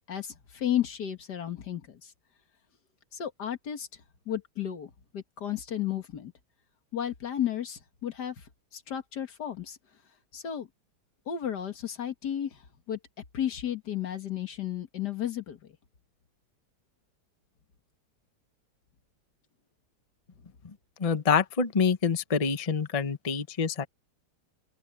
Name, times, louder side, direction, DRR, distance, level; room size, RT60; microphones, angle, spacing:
voice 1, 0.1-2.1 3.1-3.9 4.3-6.3 6.9-8.4 8.7-9.8 10.3-10.7 11.3-12.6 12.9-13.0 13.3-15.6, left 10 dB, 70° left, 2.1 m, -33 dB
voice 2, 21.0-23.9, left 6 dB, 25° left, 0.9 m, -26 dB
open air
omnidirectional pair, 1.9 m